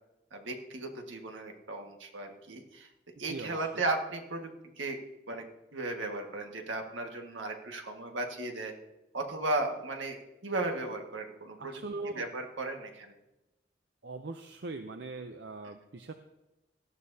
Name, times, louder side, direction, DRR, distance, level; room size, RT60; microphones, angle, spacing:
voice 1, 0.3-2.9 3.2-4.5 4.8-5.0 5.3-5.4 5.7-8.7 9.1-11.7 12.1-13.1, right 2 dB, 75° right, 3 dB, 1.6 m, -35 dB
voice 2, 3.3-3.8 11.6-12.3 14.0-16.1, right 3 dB, 60° right, 7 dB, 0.6 m, -41 dB
17.5 x 12.0 x 2.8 m, 0.99 s
head